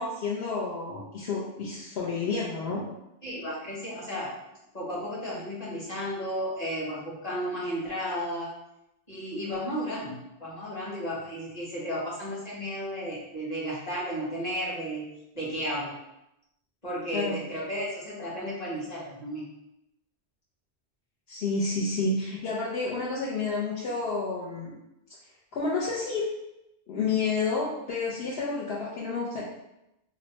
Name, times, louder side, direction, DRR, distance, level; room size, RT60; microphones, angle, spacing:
voice 1, 0.0-2.8 17.1-17.4 21.3-24.7 25.5-26.3 26.9-29.4, left 4 dB, 70° left, -6 dB, 0.8 m, -30 dB
voice 2, 3.2-4.3 4.7-8.5 9.1-15.1 15.3-15.9 16.8-19.5, equal, 40° left, -7 dB, 1.1 m, -33 dB
2.7 x 2.1 x 4.0 m, 0.88 s
omnidirectional pair, 1.1 m